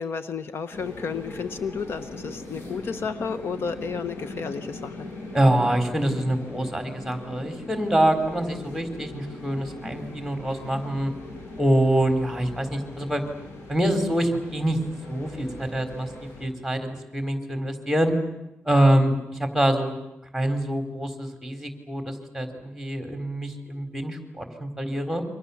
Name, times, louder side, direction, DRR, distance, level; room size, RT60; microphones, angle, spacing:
voice 1, 0.0-5.1, left 5 dB, 65° left, 10 dB, 1.2 m, -32 dB
sound 1, 0.7-16.5, left 2 dB, 90° left, 7.2 m, -40 dB
voice 2, 5.3-11.1 11.6-13.2 13.7-14.8 15.1-16.1 16.4-18.1 18.6-19.9 20.3-25.2, right 1 dB, ahead, 6 dB, 4.0 m, -25 dB
28.5 x 25.0 x 7.1 m, 0.89 s
wide cardioid pair, 130°, 4 cm